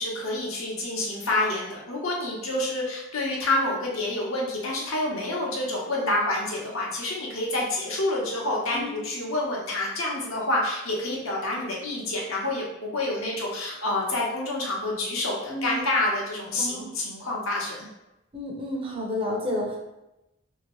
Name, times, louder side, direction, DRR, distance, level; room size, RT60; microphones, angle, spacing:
voice 1, 0.0-17.9, left 2 dB, 75° left, -3 dB, 0.9 m, -28 dB
voice 2, 8.7-9.1 15.5-15.8 16.6-16.9 18.3-19.8, left 1 dB, 25° right, -2 dB, 0.6 m, -31 dB
2.9 x 2.8 x 3.0 m, 0.91 s
head